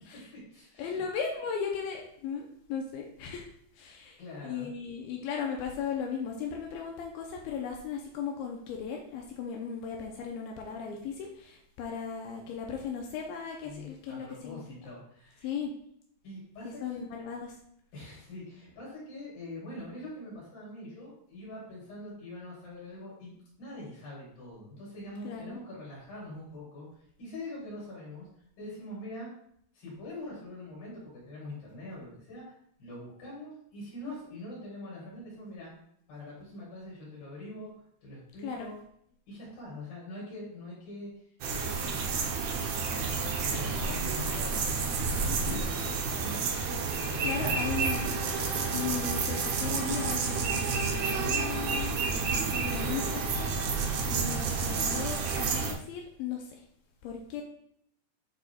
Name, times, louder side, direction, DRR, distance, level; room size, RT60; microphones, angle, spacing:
voice 1, 0.1-1.0 4.0-4.7 13.6-15.5 16.2-17.0 17.9-26.9 27.2-28.3 28.6-29.3 29.7-32.4 32.8-35.7 36.1-37.7 38.0-38.8 39.3-41.1 41.5-42.1 42.7-48.0, left 1 dB, 65° left, -6 dB, 4.5 m, -44 dB
voice 2, 0.8-3.5 3.8-4.2 4.4-14.6 15.4-15.7 16.8-17.6 25.2-25.6 34.1-34.2 38.4-38.7 45.3-45.6 47.2-48.1 48.7-56.6 57.0-57.4, left 6 dB, 85° left, 1 dB, 2.5 m, -37 dB
sound 1, 41.4-55.7, right 4 dB, 80° right, 1.6 m, -30 dB
11.5 x 4.1 x 2.4 m, 0.69 s
omnidirectional pair, 4.4 m